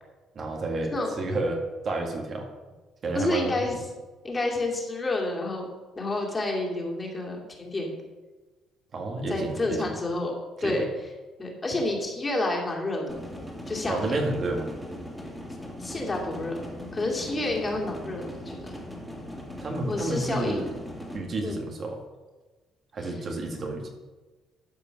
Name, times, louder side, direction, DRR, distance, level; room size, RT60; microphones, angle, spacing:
voice 1, 0.4-2.5 3.0-3.6 8.9-9.9 10.6-10.9 13.9-14.7 19.6-20.7 21.1-22.0 22.9-23.9, right 2 dB, 45° right, 2 dB, 1.8 m, -30 dB
voice 2, 3.1-3.8 4.2-5.7 5.9-8.0 9.3-10.3 10.6-10.8 11.4-13.2 13.7-14.2 15.8-16.6 16.9-18.8 19.9-20.7 21.4-21.6 23.0-23.1, left 2 dB, 25° left, -1 dB, 2.6 m, -29 dB
sound 1, 13.1-21.2, equal, ahead, 2.4 m, -39 dB
12.5 x 5.2 x 5.9 m, 1.2 s
cardioid pair, 95°, 0 cm